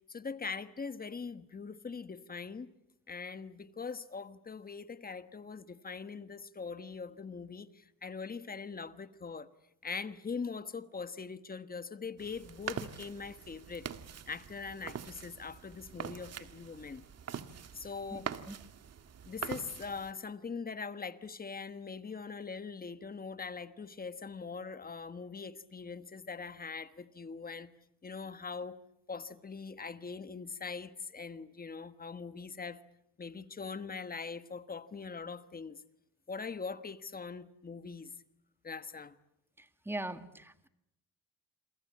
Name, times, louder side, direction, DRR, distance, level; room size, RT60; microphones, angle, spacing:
voice 1, 0.1-2.7 3.1-9.5 9.8-13.9 14.3-17.0 17.7-18.3 19.3-27.7 28.0-28.8 29.1-32.8 33.2-35.8 36.3-38.1 38.6-39.1, left 5 dB, 25° left, 1.3 m, -42 dB
sound 1, 12.2-20.1, right 8 dB, 45° right, 1.7 m, -44 dB
voice 2, 39.6-40.7, right 1 dB, 5° right, 1.8 m, -41 dB
28.5 x 22.5 x 8.5 m
cardioid pair, 110°, 35 cm